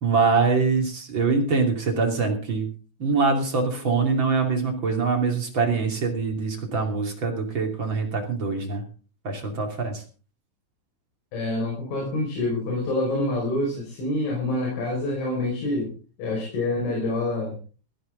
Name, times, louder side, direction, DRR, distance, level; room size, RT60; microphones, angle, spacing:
voice 1, 0.0-2.7 3.0-8.8 9.2-10.0, right 4 dB, 30° right, 2 dB, 2.6 m, -24 dB
voice 2, 11.3-15.9 16.2-17.6, left 2 dB, 80° left, -1 dB, 7.8 m, -26 dB
17.0 x 15.0 x 3.9 m, 0.36 s
omnidirectional pair, 5.4 m